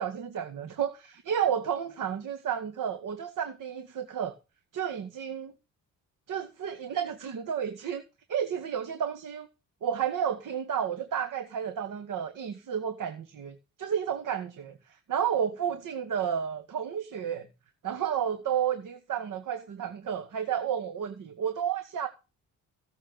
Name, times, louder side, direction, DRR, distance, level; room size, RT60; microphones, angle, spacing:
voice 1, 0.0-4.3 4.7-5.5 6.3-8.0 8.3-9.5 9.8-14.7 15.1-17.5 17.8-22.1, right 8 dB, 65° right, 2.2 m, -31 dB
17.0 x 7.5 x 5.6 m
cardioid pair, 75°, 34 cm